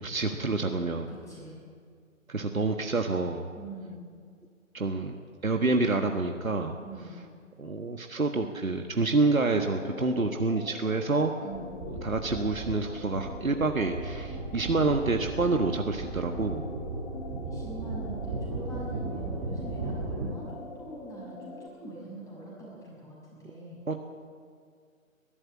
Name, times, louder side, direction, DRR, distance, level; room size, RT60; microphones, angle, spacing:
voice 1, 0.0-1.1 2.3-3.5 4.7-5.2 5.4-6.7 7.6-11.3 12.0-16.6 23.9-24.0, right 3 dB, 75° right, 5 dB, 1.5 m, -27 dB
voice 2, 1.1-1.6 3.5-4.0 6.8-7.2 11.4-11.8 17.4-23.8, right 2 dB, 10° left, -5 dB, 6.0 m, -43 dB
sound 1, 9.2-21.7, left 5 dB, 25° left, 1.7 m, -45 dB
sound 2, 11.5-20.3, right 3 dB, 20° right, 2.6 m, -36 dB
21.5 x 13.0 x 9.7 m, 2.1 s
figure-of-eight pair, 140°, 41 cm